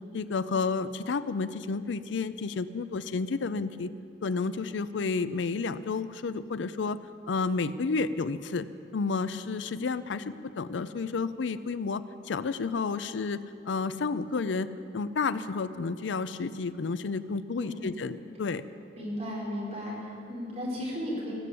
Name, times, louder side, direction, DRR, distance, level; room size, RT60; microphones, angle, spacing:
voice 1, 0.1-3.9 4.2-7.0 7.3-8.6 8.9-13.4 13.7-14.7 14.9-18.6, left 4 dB, 85° left, 14 dB, 0.5 m, -31 dB
voice 2, 18.9-21.3, equal, 40° right, -5 dB, 4.7 m, -35 dB
18.5 x 6.9 x 8.5 m, 2.4 s
head